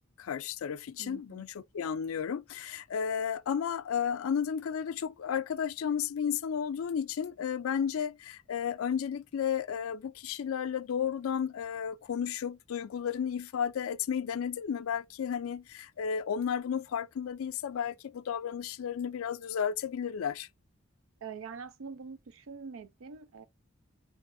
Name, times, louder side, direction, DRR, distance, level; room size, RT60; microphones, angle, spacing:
voice 1, 0.2-20.5, left 7 dB, 90° left, 0.4 m, -33 dB
voice 2, 1.0-1.5 21.2-23.5, right 5 dB, 75° right, 0.4 m, -44 dB
4.1 x 3.0 x 2.5 m
head